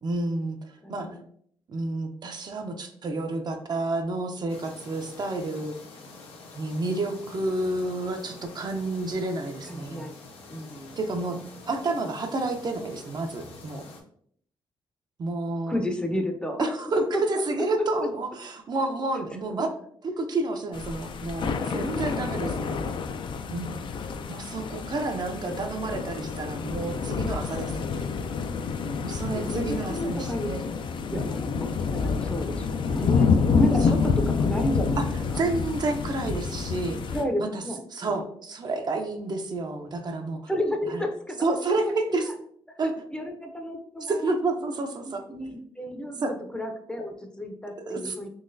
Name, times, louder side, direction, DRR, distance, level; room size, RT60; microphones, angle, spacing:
voice 1, 0.0-0.6 0.9-1.2 1.7-5.8 6.5-10.1 11.0-11.4 11.7-13.8 15.2-15.8 16.6-17.0 17.3-19.7 20.0-22.8 23.5-28.0 29.0-30.6 31.1-31.3 35.0-35.1 35.3-37.0 37.4-37.6 37.9-40.4 40.9-41.0 41.4-42.3 42.8-42.9 44.1-45.2 46.2-46.3 47.9-48.1, right 2 dB, 45° right, 5 dB, 0.5 m, -30 dB
voice 2, 0.8-1.3 9.6-10.2 10.5-11.0 15.7-17.7 18.0-18.1 19.2-19.3 19.6-19.7 29.3-30.5 31.1-35.0 35.3-35.5 37.1-38.2 40.5-41.5 41.8-42.3 42.7-44.3 45.0-48.3, equal, 10° left, 4 dB, 0.5 m, -32 dB
sound 1, 4.5-14.0, left 3 dB, 85° left, 0.8 m, -47 dB
sound 2, 20.7-37.2, left 5 dB, 55° left, 0.3 m, -28 dB
3.9 x 3.0 x 2.6 m, 0.63 s
cardioid pair, 95°, 10 cm